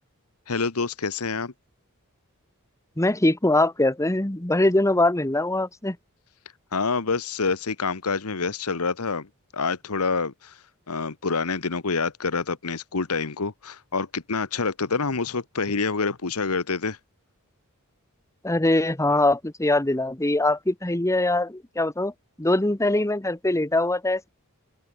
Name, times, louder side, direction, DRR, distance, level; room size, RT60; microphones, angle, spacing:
voice 1, 0.5-1.5 6.7-9.3 9.5-10.5 10.9-17.0, left 4 dB, 75° left, 1.3 m, -27 dB
voice 2, 3.0-6.0 18.4-22.1 22.4-24.3, left 2 dB, 15° left, 1.2 m, -22 dB
open air
head